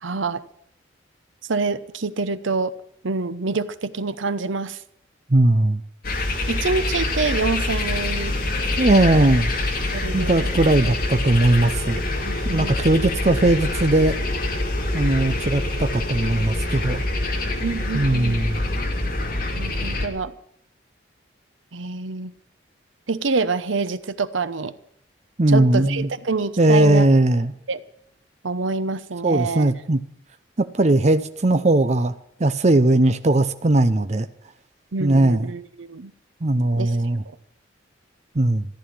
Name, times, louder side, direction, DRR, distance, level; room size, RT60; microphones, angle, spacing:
voice 1, 0.0-0.4 1.5-2.7 3.0-4.8 6.5-8.4 9.9-10.5 12.2-12.7 17.6-18.4 19.6-20.3 21.7-22.3 23.1-24.7 25.5-27.1 27.7-27.8 28.4-29.7 34.9-36.1 36.8-36.9, right 4 dB, 80° right, 14 dB, 0.9 m, -26 dB
voice 2, 5.3-5.8 8.8-9.5 10.1-12.0 12.4-14.1 14.9-17.0 17.9-18.6 25.4-26.1 26.6-27.5 29.2-30.0 30.6-32.1 32.4-34.3 35.0-35.5 36.4-37.2 38.3-38.7, right 2 dB, 35° right, 10 dB, 0.7 m, -19 dB
sound 1, 6.0-20.1, left 2 dB, 50° left, 2.5 m, -25 dB
14.5 x 10.5 x 7.6 m, 0.71 s
head